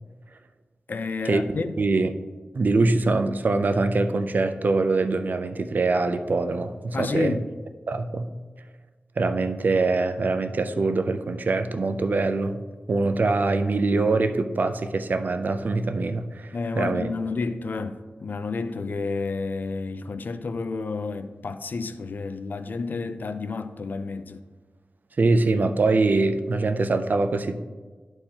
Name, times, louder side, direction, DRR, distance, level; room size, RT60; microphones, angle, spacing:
voice 1, 0.9-1.8 6.9-7.5 16.5-24.4, left 4 dB, 60° left, 0.4 m, -30 dB
voice 2, 1.8-2.1 2.5-7.4 7.9-8.3 9.2-12.6 12.9-17.1 25.2-27.5, right 3 dB, 55° right, 0.5 m, -23 dB
11.5 x 4.5 x 2.9 m
wide cardioid pair, 90°, 4 cm